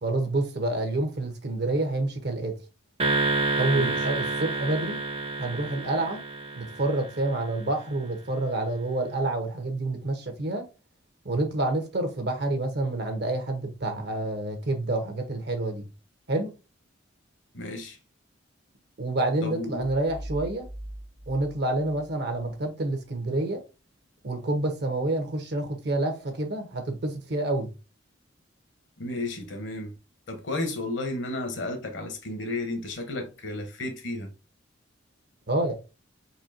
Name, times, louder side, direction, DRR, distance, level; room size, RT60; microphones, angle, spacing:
voice 1, 0.0-2.5 3.6-5.0 5.4-6.2 6.5-10.6 11.2-15.8 16.3-16.5 19.0-20.7 21.3-23.6 24.2-27.7 35.5-35.7, right 2 dB, 60° right, 0.9 m, -28 dB
sound 1, 3.0-7.5, right 2 dB, 30° right, 0.6 m, -29 dB
voice 2, 3.8-4.1 17.5-18.0 19.4-19.8 29.0-29.9 30.3-34.3, left 2 dB, 65° left, 0.9 m, -33 dB
sound 2, 20.0-22.6, right 1 dB, 85° left, 1.2 m, -41 dB
4.3 x 2.7 x 2.6 m
head